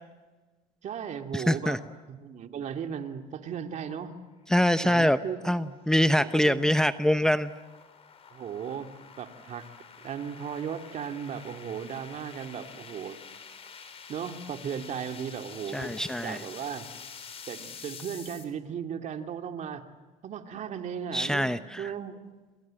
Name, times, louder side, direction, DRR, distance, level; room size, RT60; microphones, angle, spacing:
voice 1, 0.8-1.8 2.1-4.2 4.8-5.5 6.2-6.7 8.3-8.9 9.2-9.7 10.0-13.2 14.1-15.9 16.2-16.9 17.5-19.9 20.2-22.2, right 8 dB, 45° right, 6 dB, 2.6 m, -36 dB
voice 2, 1.3-1.8 4.5-5.2 5.4-7.5 15.7-16.4 21.1-21.9, left 1 dB, 5° left, 11 dB, 0.8 m, -24 dB
sound 1, 4.5-18.4, left 6 dB, 35° left, 4.8 m, -48 dB
sound 2, 15.8-17.8, left 10 dB, 80° left, 3.4 m, -49 dB
28.5 x 26.5 x 7.8 m, 1.3 s
supercardioid pair, 105°, 16 cm